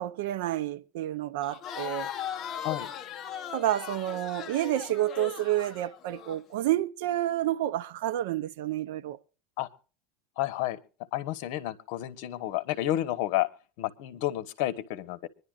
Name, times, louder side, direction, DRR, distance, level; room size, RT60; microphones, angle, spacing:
voice 1, 0.0-2.1 3.5-9.2, right 13 dB, 70° right, 0.6 m, -29 dB
Crowd, 1.4-6.4, left 9 dB, 30° left, 0.9 m, -38 dB
voice 2, 10.4-10.8 11.1-13.5 13.8-15.3, left 14 dB, 60° left, 1.2 m, -30 dB
25.0 x 11.0 x 2.5 m
supercardioid pair, 155°, 0 cm